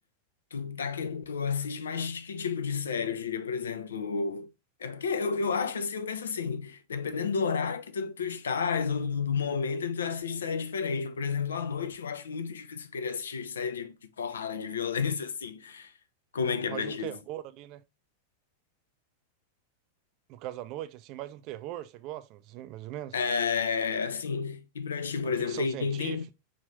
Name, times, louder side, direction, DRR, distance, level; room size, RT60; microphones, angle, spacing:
voice 1, 0.5-4.5 4.8-15.9 16.3-17.1 23.1-26.2, left 5 dB, 70° left, 0.4 m, -31 dB
voice 2, 16.7-17.8 20.3-23.2 25.2-26.3, right 13 dB, 40° right, 0.4 m, -40 dB
4.9 x 2.7 x 3.2 m
figure-of-eight pair, 90°, 0 cm